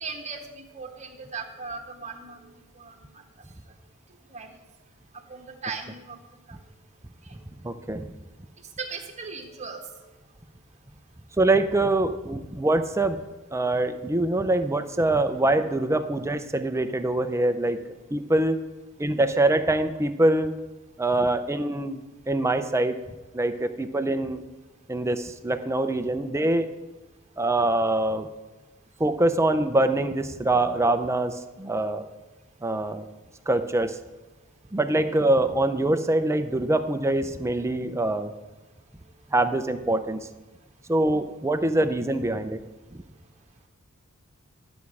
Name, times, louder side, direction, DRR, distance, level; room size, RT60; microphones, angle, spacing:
voice 1, 0.0-2.4 2.8-2.9 4.3-4.5 5.3-6.2 6.5-6.6 8.8-9.8 16.7-16.8, right 4 dB, 30° right, 3 dB, 1.3 m, -37 dB
voice 2, 7.6-8.1 11.4-13.2 13.5-17.8 18.1-18.6 19.0-20.5 21.0-22.0 22.3-23.0 23.3-24.4 24.9-26.7 27.4-28.3 29.0-32.0 32.6-33.1 33.5-34.0 34.7-38.3 39.3-40.3 40.9-42.6 42.9-43.0, right 2 dB, 15° right, 8 dB, 0.5 m, -24 dB
12.0 x 7.1 x 4.7 m, 1.1 s
head